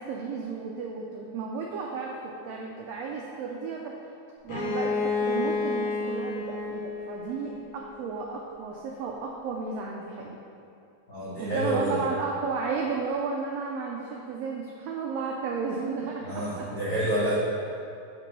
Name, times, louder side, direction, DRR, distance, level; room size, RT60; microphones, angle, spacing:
voice 1, 0.0-3.9 4.4-10.4 11.4-16.7, right 4 dB, 90° right, -1 dB, 1.4 m, -33 dB
Bowed string instrument, 4.5-8.1, left 4 dB, 55° left, 1.9 m, -30 dB
voice 2, 11.1-11.9 16.2-17.3, right 1 dB, 80° left, -9 dB, 0.7 m, -28 dB
6.7 x 4.5 x 5.3 m, 2.6 s
omnidirectional pair, 3.5 m